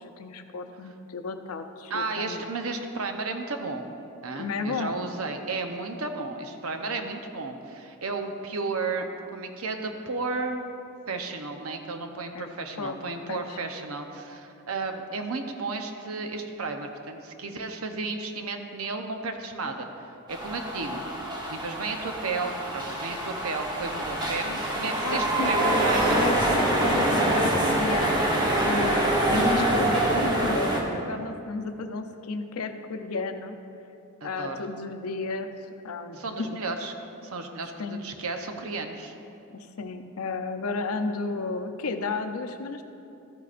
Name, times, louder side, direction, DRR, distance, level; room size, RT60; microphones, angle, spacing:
voice 1, 0.0-2.4 4.4-4.9 12.3-12.5 12.8-13.0 13.3-13.6 25.0-33.6 34.2-35.5 35.8-36.6 37.8-38.0 39.5-42.8, left 3 dB, 85° left, 7 dB, 0.6 m, -33 dB
voice 2, 1.9-3.9 4.2-10.6 11.1-21.0 21.5-26.3 34.2-34.6 36.1-36.9 37.2-39.1, right 3 dB, 70° right, 5 dB, 0.8 m, -33 dB
sound 1, 20.3-30.8, right 1 dB, 20° right, 1.1 m, -25 dB
13.5 x 9.3 x 2.5 m, 2.8 s
head